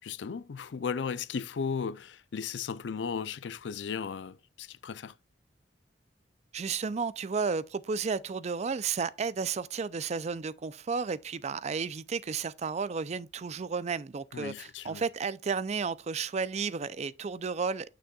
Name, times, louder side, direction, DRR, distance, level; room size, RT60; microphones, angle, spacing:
voice 1, 0.0-5.1 14.3-15.0, left 6 dB, 80° left, 0.4 m, -36 dB
voice 2, 6.5-17.9, right 5 dB, 40° right, 0.4 m, -32 dB
9.7 x 6.1 x 2.3 m
head